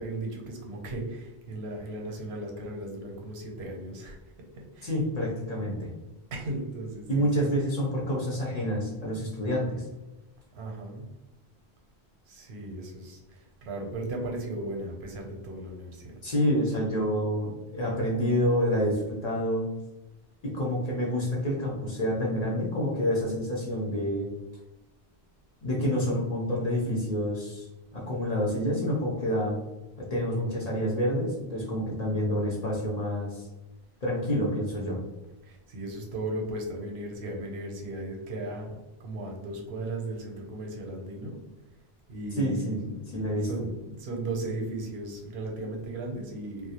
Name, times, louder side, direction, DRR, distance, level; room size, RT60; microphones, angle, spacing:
voice 1, 0.0-4.2 4.5-4.9 6.3-7.3 10.5-11.1 12.3-16.2 35.4-41.4 42.1-43.1 43.4-46.7, right 2 dB, 85° right, 1 dB, 0.8 m, -36 dB
voice 2, 4.8-5.9 7.1-9.9 16.2-19.7 20.4-24.3 25.6-27.7 27.9-29.6 30.0-33.5 34.0-35.0 42.3-43.5, equal, 50° left, -4 dB, 0.5 m, -28 dB
2.3 x 2.0 x 2.8 m, 1.0 s
omnidirectional pair, 1.1 m